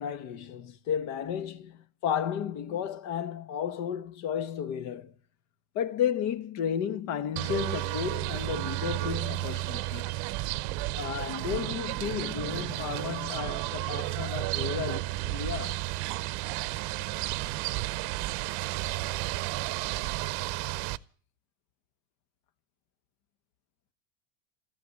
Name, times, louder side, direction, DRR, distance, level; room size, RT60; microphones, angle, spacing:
voice 1, 0.0-5.1 5.7-10.2 10.9-15.8, left 8 dB, 50° left, 1.4 m, -33 dB
sound 1, 7.4-21.0, right 19 dB, 55° right, 0.8 m, -32 dB
14.5 x 10.5 x 9.4 m
supercardioid pair, 135°, 37 cm